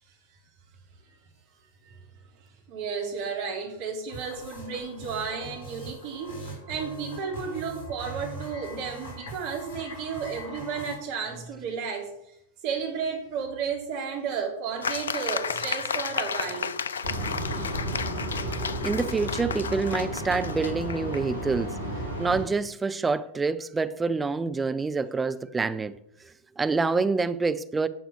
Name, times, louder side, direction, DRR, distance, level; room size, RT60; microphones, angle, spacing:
voice 1, 2.7-12.1 12.6-16.7, right 6 dB, 45° right, 3.3 m, -33 dB
sound 1, 4.1-10.9, right 1 dB, 50° left, 3.9 m, -41 dB
sound 2, 14.8-21.2, left 6 dB, 70° left, 0.6 m, -33 dB
sound 3, 17.0-22.4, right 1 dB, 85° right, 3.2 m, -33 dB
voice 2, 18.8-21.8 22.2-26.0 26.6-27.9, right 4 dB, 15° right, 0.6 m, -27 dB
11.0 x 6.0 x 7.0 m
figure-of-eight pair, 90°, 0 cm